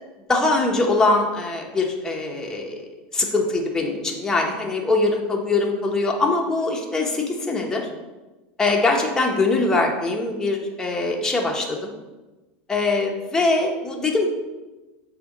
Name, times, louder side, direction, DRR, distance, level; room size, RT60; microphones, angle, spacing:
voice 1, 0.3-2.9 3.1-7.9 8.6-11.9 12.7-14.3, left 3 dB, 10° left, 0 dB, 0.9 m, -22 dB
6.8 x 2.8 x 5.2 m, 1.1 s
supercardioid pair, 140°, 6 cm